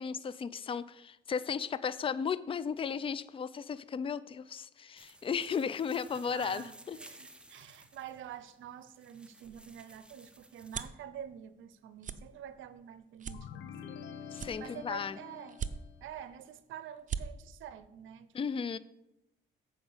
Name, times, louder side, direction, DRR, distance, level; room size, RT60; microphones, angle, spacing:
voice 1, 0.0-7.0 14.3-15.2 18.3-18.8, left 6 dB, 25° left, 16 dB, 0.4 m, -35 dB
sound 1, 5.0-10.9, right 1 dB, 5° right, 0.8 m, -56 dB
voice 2, 6.1-13.9 14.3-15.6 16.0-18.3 18.7-18.8, right 9 dB, 80° right, 14 dB, 0.6 m, -47 dB
sound 2, 9.4-11.0 11.5-11.7 12.0-12.2 12.7-12.8 13.2-14.0 14.3-15.0 15.5-16.1 16.6-16.7 16.9-17.2, right 7 dB, 40° right, 0.6 m, -39 dB
sound 3, 13.3-16.1, left 7 dB, 70° left, 0.8 m, -47 dB
8.0 x 5.0 x 7.1 m, 0.87 s
cardioid pair, 90°, 20 cm